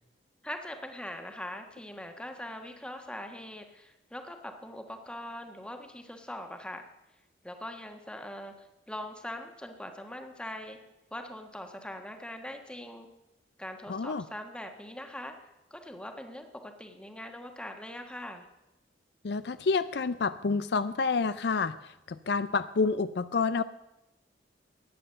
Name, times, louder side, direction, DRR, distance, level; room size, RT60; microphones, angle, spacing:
voice 1, 0.4-6.8 7.4-10.8 11.1-13.1 13.6-15.3 15.7-18.5, left 1 dB, 5° left, 5 dB, 1.4 m, -42 dB
voice 2, 13.9-14.2 19.2-23.6, left 4 dB, 65° left, 13 dB, 0.5 m, -29 dB
14.5 x 9.8 x 6.6 m, 0.92 s
head